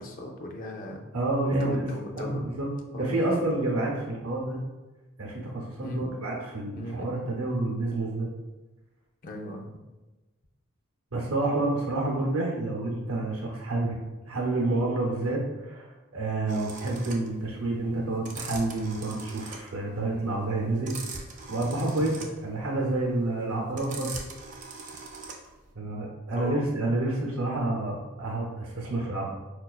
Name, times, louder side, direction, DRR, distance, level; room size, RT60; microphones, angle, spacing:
voice 1, 0.0-1.0 1.5-2.4 2.9-3.2 5.8-6.1 6.7-7.1 9.2-9.7 21.8-22.0 26.3-26.6, left 1 dB, 40° left, 2 dB, 0.4 m, -37 dB
voice 2, 1.1-1.9 2.1-4.6 5.2-8.3 11.1-13.9 14.3-21.0 21.5-24.2 25.8-29.3, right 2 dB, 85° right, -1 dB, 0.6 m, -29 dB
sound 1, 16.5-25.7, right 4 dB, 35° right, 0.3 m, -41 dB
4.6 x 2.3 x 2.3 m, 1.1 s
head